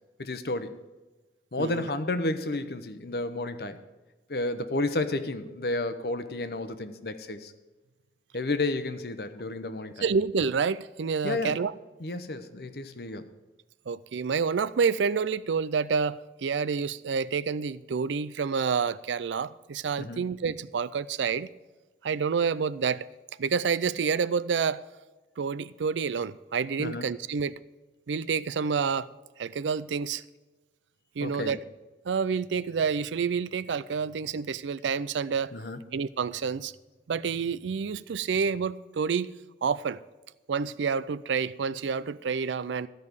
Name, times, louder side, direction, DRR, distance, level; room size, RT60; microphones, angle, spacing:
voice 1, 0.2-0.8 1.5-3.8 4.3-7.5 8.3-10.1 11.2-11.6 12.0-13.3 20.0-20.2 26.8-27.1 31.2-31.6 35.5-35.8, left 2 dB, 60° left, 0.8 m, -31 dB
voice 2, 10.0-11.7 13.9-21.5 22.0-23.1 23.4-24.8 25.4-27.5 28.1-29.1 29.4-30.2 31.2-31.6 32.1-35.5 35.9-36.7 37.1-39.3 39.6-40.0 40.5-42.9, right 5 dB, 85° right, 0.4 m, -28 dB
14.0 x 5.3 x 8.1 m
head